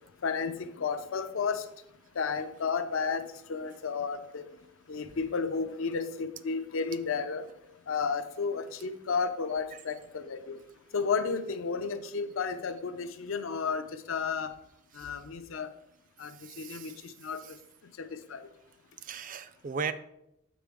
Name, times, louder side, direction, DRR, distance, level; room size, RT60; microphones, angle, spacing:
voice 1, 0.2-1.7 2.2-3.2 3.5-4.4 4.9-7.4 7.9-10.6 10.9-14.5 15.0-15.7 16.2-16.3 16.6-16.9 17.2-17.4 18.0-18.5, left 5 dB, 75° left, 10 dB, 0.5 m, -32 dB
voice 2, 16.2-17.0 17.4-17.6 19.0-19.9, right 6 dB, 40° right, 13 dB, 0.4 m, -38 dB
7.5 x 5.0 x 3.5 m, 0.84 s
head